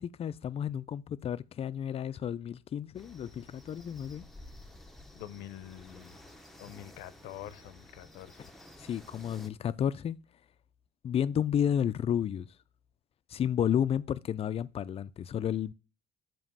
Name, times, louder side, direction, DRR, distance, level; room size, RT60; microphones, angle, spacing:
voice 1, 0.0-4.2 8.8-10.2 11.0-12.5 13.3-15.7, left 9 dB, 35° left, 0.4 m, -31 dB
sound 1, 2.9-9.5, left 1 dB, ahead, 0.7 m, -52 dB
voice 2, 5.1-6.2 6.6-8.4, left 12 dB, 85° left, 0.6 m, -46 dB
7.2 x 2.9 x 5.5 m
cardioid pair, 110°, 17 cm